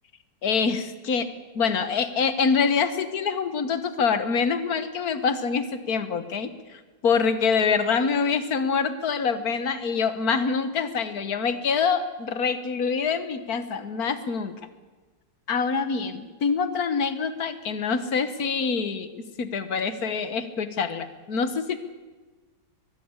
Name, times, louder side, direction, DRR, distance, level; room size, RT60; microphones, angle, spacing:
voice 1, 0.4-1.3 1.6-14.6 15.5-21.8, left 5 dB, 60° left, 13 dB, 1.7 m, -25 dB
22.5 x 13.0 x 9.8 m, 1.3 s
omnidirectional pair, 1.9 m